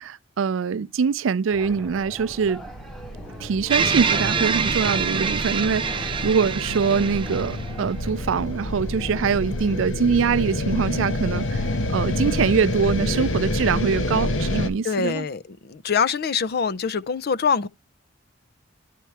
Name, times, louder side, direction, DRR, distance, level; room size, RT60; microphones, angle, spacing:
voice 1, 0.0-2.6 3.4-15.3, right 6 dB, 85° right, 0.4 m, -23 dB
sound 1, 1.5-9.9, right 1 dB, ahead, 1.1 m, -41 dB
sound 2, 2.1-14.7, left 1 dB, 75° left, 1.1 m, -28 dB
sound 3, 3.7-8.1, right 5 dB, 25° right, 0.6 m, -25 dB
voice 2, 14.8-17.7, left 6 dB, 55° left, 0.5 m, -24 dB
11.0 x 4.5 x 3.3 m
head